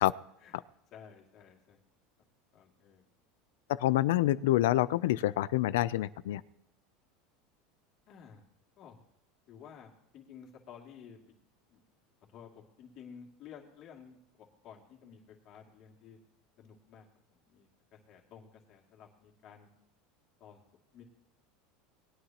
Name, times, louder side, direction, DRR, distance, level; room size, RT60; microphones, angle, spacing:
voice 1, 0.9-1.8 2.5-3.0 8.1-8.4 8.8-9.0 9.5-11.3 11.7-11.8 12.3-16.2 16.6-17.1 17.3-19.7 20.4-20.6 20.9-21.0, left 7 dB, 45° left, 1 dB, 2.5 m, -53 dB
voice 2, 3.8-6.4, left 15 dB, 85° left, 18 dB, 0.4 m, -27 dB
20.0 x 9.9 x 3.0 m, 0.81 s
supercardioid pair, 135°, 0 cm